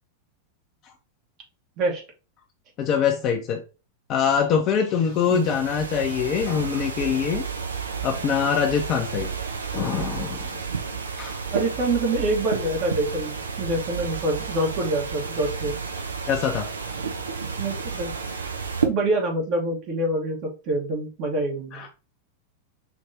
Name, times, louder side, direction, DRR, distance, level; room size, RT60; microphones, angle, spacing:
voice 1, 2.8-3.6 4.1-7.4 8.0-9.3 9.7-10.6 11.2-11.4 16.3-16.7 21.7-21.9, left 7 dB, 35° left, 2 dB, 0.7 m, -24 dB
sound 1, 5.0-18.9, right 5 dB, 75° right, 0.7 m, -31 dB
voice 2, 11.5-15.7 17.6-18.1 18.8-21.9, right 2 dB, 40° right, 1 dB, 1.3 m, -26 dB
5.9 x 3.1 x 2.7 m, 0.32 s
figure-of-eight pair, 90°, 0 cm